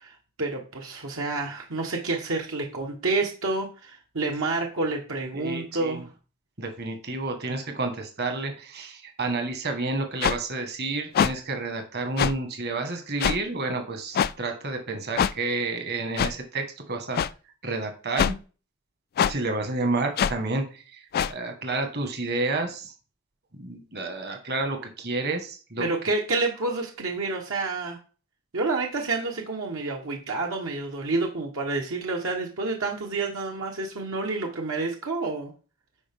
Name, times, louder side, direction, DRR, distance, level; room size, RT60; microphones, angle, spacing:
voice 1, 0.0-6.0 25.8-28.0 28.5-35.5, right 3 dB, 70° right, 1 dB, 1.2 m, -29 dB
voice 2, 5.3-6.0 6.6-17.2 17.6-18.3 19.2-22.9 23.5-25.9, right 3 dB, 50° right, 5 dB, 1.5 m, -30 dB
sound 1, 10.2-10.4 11.1-11.3 12.2-12.3 13.2-13.4 14.1-14.3 15.2-15.3 16.2-16.3 17.1-17.3 18.2-18.4 19.2-19.3 20.2-20.3 21.1-21.3, left 8 dB, 45° left, 0.3 m, -23 dB
10.0 x 4.8 x 3.6 m, 0.36 s
head